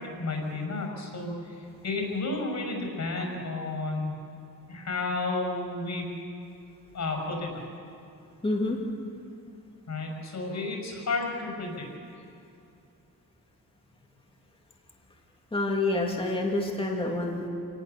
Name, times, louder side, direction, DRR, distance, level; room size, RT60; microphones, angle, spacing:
voice 1, 0.0-4.2 4.7-6.1 6.9-7.5 9.9-11.8, left 3 dB, 55° left, 2 dB, 6.1 m, -32 dB
voice 2, 8.4-8.8 15.5-17.5, left 2 dB, 15° left, -1 dB, 2.6 m, -27 dB
27.5 x 19.0 x 6.9 m, 2.5 s
wide cardioid pair, 175°, 35 cm